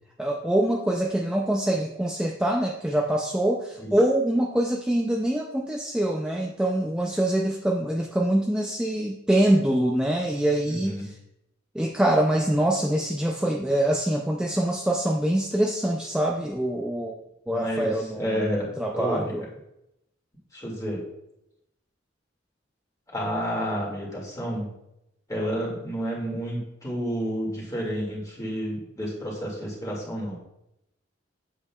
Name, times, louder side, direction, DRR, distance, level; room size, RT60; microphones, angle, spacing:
voice 1, 0.2-11.1 11.7-17.2 17.5-19.5, right 1 dB, 5° right, 0 dB, 0.4 m, -24 dB
voice 2, 10.7-11.1 17.5-19.3 20.5-21.0 23.1-24.7 25.3-30.3, equal, 20° left, -4 dB, 2.1 m, -30 dB
8.1 x 7.5 x 2.3 m, 0.85 s
head